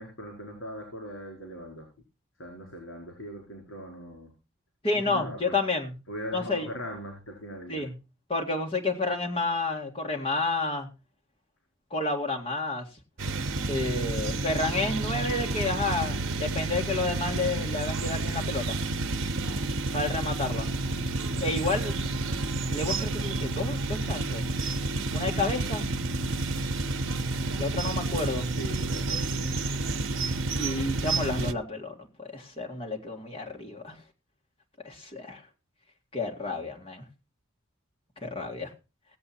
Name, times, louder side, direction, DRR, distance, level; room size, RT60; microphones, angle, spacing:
voice 1, 0.0-1.9 2.4-4.3 4.9-5.6 6.1-7.9 28.4-29.8, equal, 75° left, 1 dB, 4.5 m, -40 dB
voice 2, 4.8-5.9 6.3-6.7 7.7-8.0 8.3-10.9 11.9-12.9 13.7-18.8 19.9-20.7 21.4-21.9 22.7-24.5 25.1-25.9 27.6-28.5 30.6-33.9 34.8-35.4 36.1-37.1 38.2-38.7, left 3 dB, 25° left, 1 dB, 2.1 m, -30 dB
sound 1, 13.2-31.5, right 3 dB, 75° right, 0.7 m, -30 dB
17.5 x 7.9 x 4.3 m, 0.30 s
head